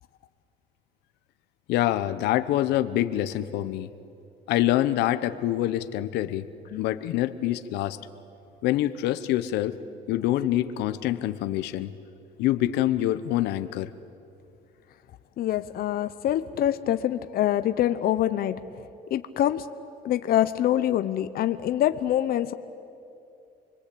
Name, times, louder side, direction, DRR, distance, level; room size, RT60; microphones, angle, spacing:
voice 1, 1.7-3.9 4.5-6.4 6.8-8.0 8.6-9.8 10.1-11.9 12.4-13.9, left 13 dB, 85° left, 11 dB, 1.0 m, -25 dB
voice 2, 15.4-18.6 19.1-19.6 20.0-22.5, left 12 dB, 60° left, 11 dB, 0.9 m, -25 dB
28.5 x 22.0 x 8.5 m, 2.6 s
cardioid pair, 110°, 17 cm